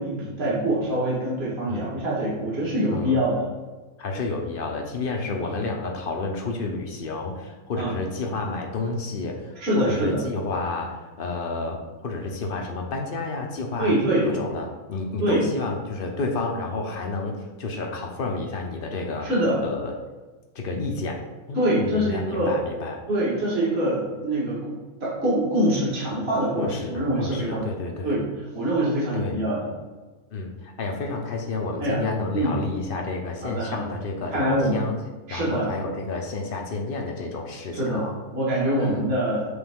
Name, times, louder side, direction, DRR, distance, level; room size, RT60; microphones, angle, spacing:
voice 1, 0.0-3.4 5.3-5.6 7.7-8.0 9.6-10.2 13.8-14.3 15.2-15.4 19.2-19.6 21.5-22.6 23.1-27.7 28.0-28.2 28.5-29.7 31.8-32.0 32.3-32.6 33.4-33.9 34.3-34.8 35.3-35.7 37.7-39.5, right 1 dB, 45° right, -6 dB, 1.9 m, -24 dB
voice 2, 4.0-13.9 14.2-19.3 19.6-19.9 20.5-21.2 21.5-23.0 26.5-28.2 29.1-29.4 30.3-34.9 35.3-38.1 38.8-39.0, left 3 dB, 45° left, 2 dB, 0.9 m, -30 dB
8.0 x 3.4 x 3.6 m, 1.3 s
omnidirectional pair, 1.5 m